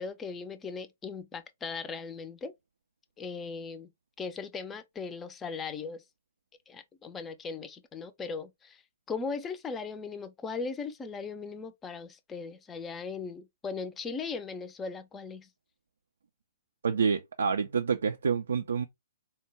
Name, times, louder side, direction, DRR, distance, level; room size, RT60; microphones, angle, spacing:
voice 1, 0.0-2.5 3.2-3.9 4.2-6.0 6.7-8.8 9.1-15.5, left 5 dB, 15° left, 0.5 m, -38 dB
voice 2, 16.8-18.9, right 6 dB, 70° right, 0.3 m, -28 dB
4.2 x 2.2 x 3.2 m
figure-of-eight pair, 115°, 0 cm